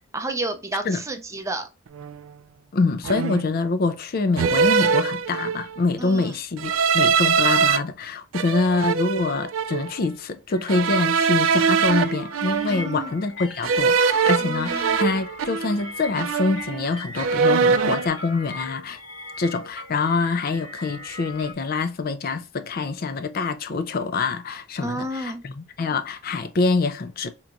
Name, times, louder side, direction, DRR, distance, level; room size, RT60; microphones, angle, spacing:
voice 1, 0.1-1.7 6.0-6.4 12.7-13.1 14.4-15.0 24.8-25.4, right 2 dB, 15° right, 0.5 m, -31 dB
sound 1, 2.0-2.2 3.0-3.6 4.4-5.8 6.6-7.8 8.3-9.9 10.7-13.0 13.6-15.9 16.1-16.9 17.2-18.1, right 6 dB, 70° right, 0.3 m, -22 dB
voice 2, 2.7-19.0 19.4-27.3, left 3 dB, 45° left, 0.4 m, -25 dB
sound 2, 10.5-21.5, left 2 dB, 70° left, 1.4 m, -39 dB
4.5 x 2.9 x 2.5 m
head